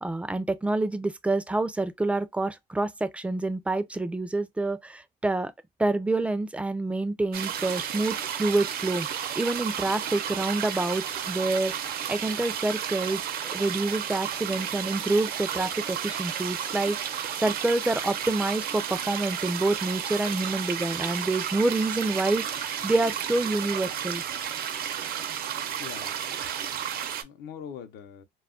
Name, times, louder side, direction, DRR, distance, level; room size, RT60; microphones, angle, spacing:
voice 1, 0.0-5.5 5.8-9.1 9.4-24.2, right 2 dB, 5° right, 0.3 m, -27 dB
sound 1, 7.3-27.2, right 9 dB, 60° right, 0.5 m, -32 dB
voice 2, 25.8-26.2 26.6-28.2, left 8 dB, 80° left, 0.6 m, -43 dB
2.3 x 2.0 x 3.6 m
cardioid pair, 110°, 17 cm